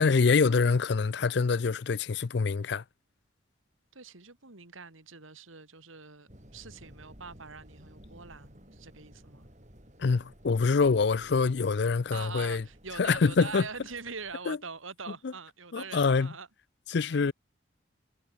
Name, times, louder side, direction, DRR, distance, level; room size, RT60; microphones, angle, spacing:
voice 1, 0.0-2.8 10.0-12.6 13.0-13.7 14.5-14.6 15.2-15.3 15.7-16.3 16.9-17.3, left 4 dB, 55° left, 0.5 m, -25 dB
voice 2, 3.9-9.5 12.1-16.5 17.1-17.3, right 5 dB, 85° right, 2.8 m, -44 dB
sound 1, 6.3-14.4, equal, 35° right, 6.8 m, -55 dB
head